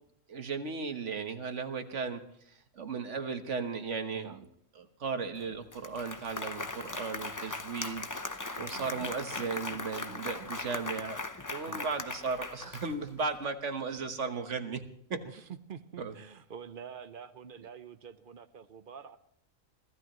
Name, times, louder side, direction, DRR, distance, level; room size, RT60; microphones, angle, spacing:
voice 1, 0.3-4.4 4.8-11.2 11.5-14.8 15.1-15.2 16.0-16.1, right 5 dB, 60° right, 8 dB, 1.5 m, -36 dB
voice 2, 4.1-4.5 8.6-8.9 11.7-12.0 15.2-19.2, right 7 dB, 45° right, 11 dB, 0.9 m, -47 dB
Applause, 5.4-5.5 5.7-13.3, left 2 dB, 20° left, 0.6 m, -39 dB
25.5 x 16.0 x 3.1 m, 0.69 s
omnidirectional pair, 1.4 m